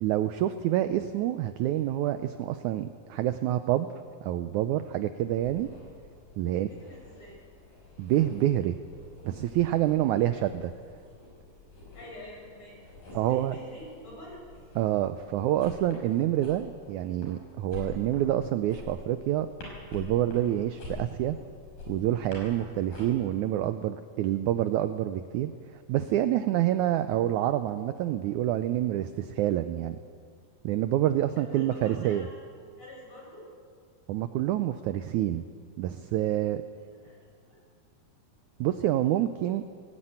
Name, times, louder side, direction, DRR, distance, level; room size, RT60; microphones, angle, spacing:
voice 1, 0.0-3.9 4.2-5.7 6.4-6.7 8.0-8.8 9.2-10.7 13.1-13.6 14.8-19.5 19.9-21.4 21.9-30.0 30.6-32.3 34.1-35.4 35.8-36.6 38.6-39.6, right 12 dB, 80° right, 10 dB, 1.8 m, -27 dB
sound 1, 5.4-23.0, left 3 dB, 70° left, 7.5 m, -47 dB
voice 2, 6.5-7.4 10.2-10.4 11.9-14.4 31.4-32.4 32.8-33.5 37.0-37.6, left 1 dB, 35° left, -3 dB, 6.5 m, -47 dB
18.5 x 17.0 x 8.8 m, 2.1 s
omnidirectional pair, 4.0 m